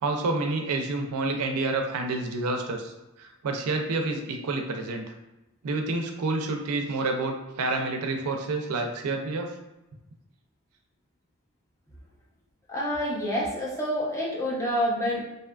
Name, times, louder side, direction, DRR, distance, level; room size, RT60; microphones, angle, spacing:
voice 1, 0.0-2.9 3.2-5.0 5.6-9.5, right 3 dB, 85° right, 4 dB, 0.4 m, -28 dB
voice 2, 12.7-15.2, equal, 15° left, -4 dB, 0.5 m, -27 dB
2.7 x 2.3 x 2.2 m, 0.97 s
head